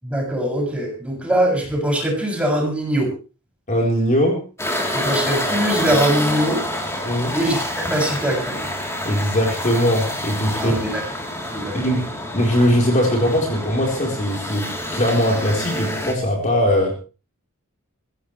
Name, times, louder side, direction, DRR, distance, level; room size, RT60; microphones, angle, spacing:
voice 1, 0.0-3.1 4.9-6.6 7.3-8.7 10.6-11.0 11.4-11.9, right 1 dB, 5° right, -1 dB, 7.3 m, -22 dB
voice 2, 3.7-4.4 7.0-7.4 9.0-10.8 11.7-12.0 12.3-16.9, equal, 35° left, 0 dB, 4.2 m, -20 dB
sound 1, 4.6-16.1, left 1 dB, 10° left, 3.5 m, -27 dB
23.0 x 16.0 x 3.3 m, 0.35 s
head